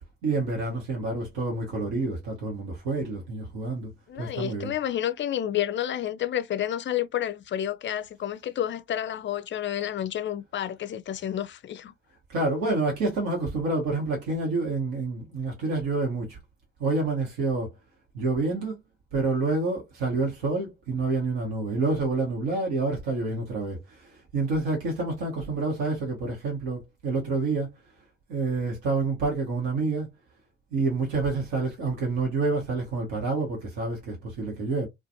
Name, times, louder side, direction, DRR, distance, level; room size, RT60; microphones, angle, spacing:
voice 1, 0.2-3.9 4.2-4.7 12.3-16.4 16.8-17.7 18.1-18.7 19.1-27.7 28.3-30.1 30.7-34.9, right 3 dB, 70° right, 1.1 m, -28 dB
voice 2, 4.1-11.9, left 11 dB, 30° left, 0.4 m, -30 dB
2.4 x 2.3 x 2.6 m
hypercardioid pair, 50°, 38 cm